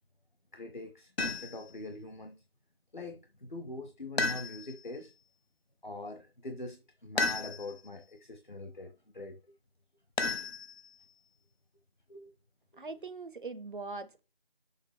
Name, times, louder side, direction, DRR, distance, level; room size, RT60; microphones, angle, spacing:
voice 1, 0.5-2.4 2.9-5.1 5.8-9.4 12.1-12.3, left 2 dB, 50° left, 0.7 m, -43 dB
sound 1, 1.2-1.7 4.2-4.9 7.2-7.9 10.2-11.0, left 3 dB, 85° left, 0.7 m, -33 dB
voice 2, 12.8-14.2, right 3 dB, 55° right, 0.7 m, -41 dB
6.6 x 2.8 x 5.7 m
figure-of-eight pair, 175°, 30 cm